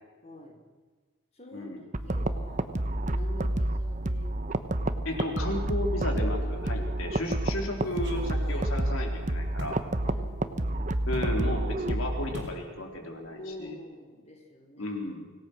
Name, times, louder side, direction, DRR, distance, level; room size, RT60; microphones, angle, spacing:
voice 1, 0.2-0.7 1.3-1.7 2.0-2.7 3.1-4.3 4.9-5.2 6.5-7.2 10.0-11.0 13.3-15.0, left 1 dB, 35° left, 2 dB, 3.6 m, -46 dB
sound 1, 1.9-12.3, right 1 dB, 40° right, 1.0 m, -29 dB
voice 2, 5.0-9.8 11.1-13.8 14.8-15.3, left 1 dB, 85° left, 2 dB, 3.9 m, -34 dB
sound 2, 7.8-9.8 11.1-11.4 12.3-12.6 12.9-13.3 13.5-13.7, equal, 55° right, 4.1 m, -42 dB
25.5 x 18.0 x 6.3 m, 1.4 s
head